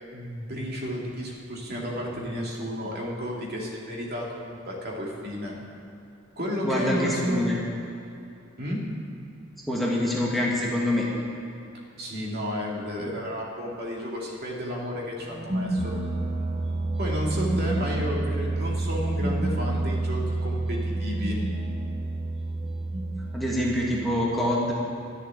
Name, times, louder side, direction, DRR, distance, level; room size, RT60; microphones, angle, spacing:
voice 1, 0.1-5.5 6.4-7.4 8.6-8.8 12.0-15.9 17.0-21.4, equal, 50° right, -3 dB, 2.5 m, -32 dB
voice 2, 6.6-7.5 9.7-11.0 23.3-24.7, left 1 dB, ahead, -5 dB, 1.7 m, -25 dB
sound 1, 15.3-24.1, right 2 dB, 30° right, 0.8 m, -29 dB
12.0 x 7.4 x 9.7 m, 2.7 s
head